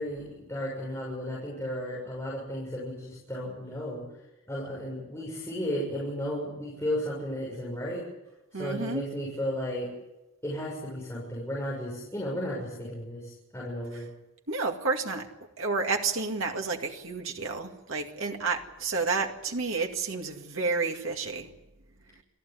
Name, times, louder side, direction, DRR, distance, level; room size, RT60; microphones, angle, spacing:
voice 1, 0.0-4.0 4.5-8.0 8.5-9.9 10.4-14.1, equal, 10° left, -5 dB, 6.8 m, -34 dB
voice 2, 8.5-9.0 14.5-15.3 15.6-21.5, right 4 dB, 70° right, 2 dB, 2.2 m, -30 dB
28.0 x 14.5 x 9.6 m, 0.97 s
head